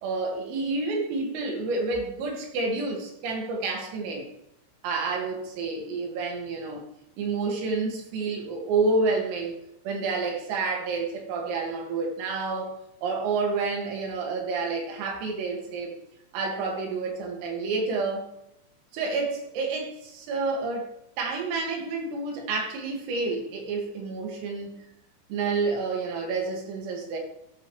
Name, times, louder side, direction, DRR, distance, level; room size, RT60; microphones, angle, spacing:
voice 1, 0.0-4.3 4.8-6.9 7.2-9.6 9.8-16.0 16.3-18.3 18.9-20.9 21.2-24.8 25.3-27.2, right 3 dB, 85° right, 4.9 m, -29 dB
13.0 x 10.0 x 3.3 m
omnidirectional pair, 5.8 m